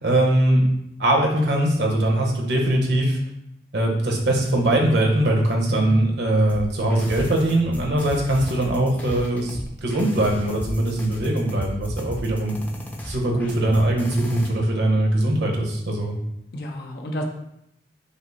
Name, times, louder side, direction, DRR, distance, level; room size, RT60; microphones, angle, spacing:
voice 1, 0.0-0.6 1.0-3.2 3.7-12.6 13.0-16.2, right 1 dB, 65° right, 0 dB, 0.9 m, -21 dB
voice 2, 5.7-6.1 16.5-17.2, equal, 60° left, 1 dB, 0.5 m, -31 dB
sound 1, 6.5-14.5, equal, 10° left, 0.5 m, -35 dB
5.2 x 2.0 x 4.0 m, 0.79 s
head